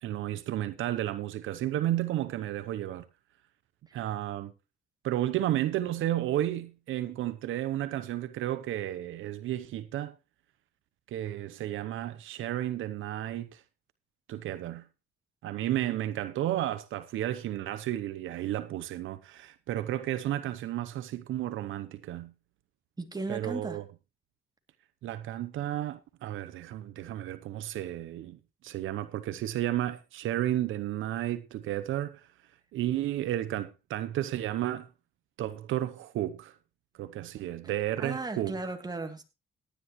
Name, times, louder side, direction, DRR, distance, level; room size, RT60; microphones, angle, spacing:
voice 1, 0.0-3.1 3.9-4.5 5.0-10.1 11.1-13.6 14.3-14.9 15.4-22.3 23.3-23.8 25.0-32.3 32.7-34.9 35.4-36.5 36.9-38.6, right 13 dB, 80° right, 0.8 m, -32 dB
voice 2, 23.0-23.8 38.0-39.2, right 3 dB, 20° right, 2.6 m, -36 dB
17.5 x 10.5 x 3.1 m
cardioid pair, 90°, 20 cm